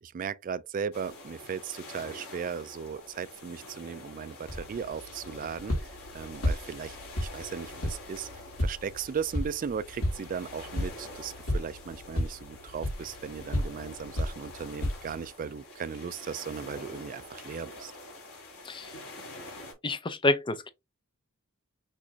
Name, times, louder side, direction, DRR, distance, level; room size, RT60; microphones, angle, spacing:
voice 1, 0.0-5.7 6.1-8.3 8.6-17.9, right 6 dB, 40° right, 0.3 m, -37 dB
sound 1, 0.9-19.7, left 1 dB, 90° left, 2.9 m, -46 dB
sound 2, 4.5-15.3, left 1 dB, 70° left, 2.1 m, -34 dB
voice 2, 19.8-20.7, left 2 dB, 20° left, 0.6 m, -28 dB
6.2 x 2.9 x 2.7 m
head